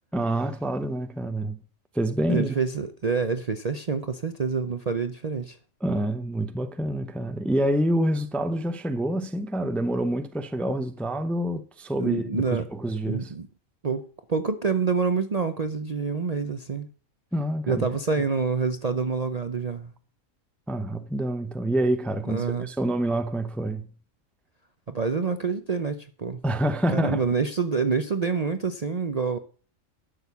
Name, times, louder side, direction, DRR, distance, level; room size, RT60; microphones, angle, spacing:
voice 1, 0.1-1.6 1.9-2.5 5.8-13.3 17.3-17.9 20.7-23.9 26.4-27.3, right 1 dB, ahead, 0.6 m, -27 dB
voice 2, 2.3-5.6 12.0-12.7 13.1-13.5 13.8-16.9 17.7-19.9 22.3-22.7 24.9-26.4 26.9-29.4, right 5 dB, 40° right, 0.6 m, -27 dB
12.0 x 6.7 x 6.9 m
omnidirectional pair, 1.4 m